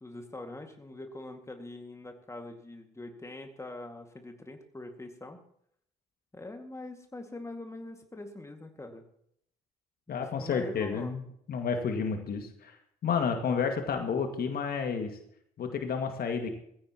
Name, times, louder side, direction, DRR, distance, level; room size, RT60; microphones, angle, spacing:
voice 1, 0.0-5.4 6.3-9.0 10.1-11.2, left 2 dB, 15° left, 5 dB, 2.1 m, -43 dB
voice 2, 10.1-11.2 11.5-12.8 13.0-15.2 15.6-16.5, left 6 dB, 50° left, 5 dB, 2.1 m, -30 dB
20.0 x 15.5 x 3.0 m, 0.70 s
figure-of-eight pair, 45°, 20 cm